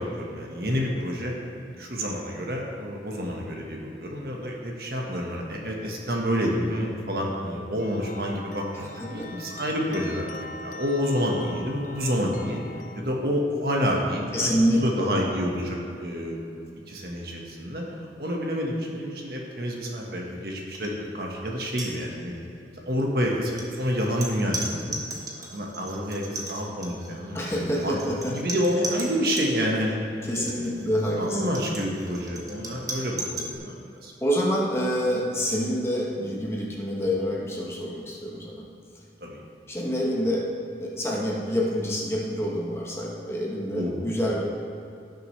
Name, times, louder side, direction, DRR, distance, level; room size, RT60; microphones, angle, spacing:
voice 1, 0.0-10.3 10.6-12.6 12.9-16.5 16.9-17.8 18.2-22.4 22.9-25.0 25.5-28.0 28.3-30.0 30.3-34.1 39.2-39.4 43.7-44.0, equal, 60° right, -1 dB, 1.4 m, -28 dB
sound 1, 7.8-13.0, left 3 dB, 45° left, 0.4 m, -42 dB
voice 2, 14.3-15.1 27.3-28.4 30.2-31.4 34.2-38.6 39.7-40.5 40.8-44.4, equal, 15° left, -3 dB, 1.2 m, -27 dB
sound 2, 20.7-20.9 21.2-21.4 21.7-22.4 23.2-29.5 30.2-33.6, right 2 dB, 20° right, 1.1 m, -37 dB
16.5 x 6.6 x 3.3 m, 2.6 s
head